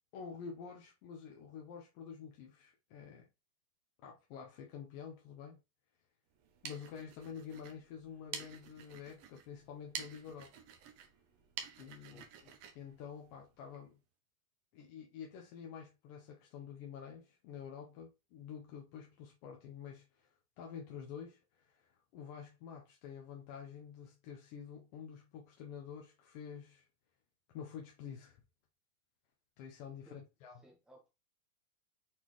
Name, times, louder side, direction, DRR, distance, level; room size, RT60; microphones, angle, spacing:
voice 1, 0.1-3.3 4.0-5.6 6.6-10.5 11.8-14.0 14.7-26.9 27.5-28.4 29.6-30.6, left 7 dB, 30° left, 0.8 m, -49 dB
sound 1, 6.3-13.8, right 8 dB, 25° right, 0.5 m, -50 dB
voice 2, 11.8-12.3 30.1-30.2 30.5-31.1, right 1 dB, ahead, 1.1 m, -61 dB
4.3 x 3.7 x 3.1 m
supercardioid pair, 160°, 43 cm